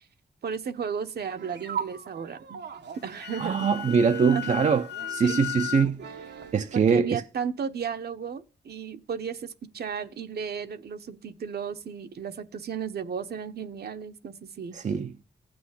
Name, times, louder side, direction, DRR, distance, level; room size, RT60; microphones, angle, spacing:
voice 1, 0.4-2.6 3.0-4.7 5.2-5.4 6.7-14.8, right 7 dB, 70° right, 1.1 m, -34 dB
sound 1, 1.4-6.7, right 8 dB, 85° right, 1.4 m, -40 dB
Wind instrument woodwind instrument, 3.0-5.9, left 13 dB, 80° left, 0.7 m, -35 dB
voice 2, 3.4-6.0 6.5-7.2 14.7-15.1, right 6 dB, 45° right, 0.7 m, -23 dB
15.5 x 6.2 x 9.8 m
wide cardioid pair, 150°, 17 cm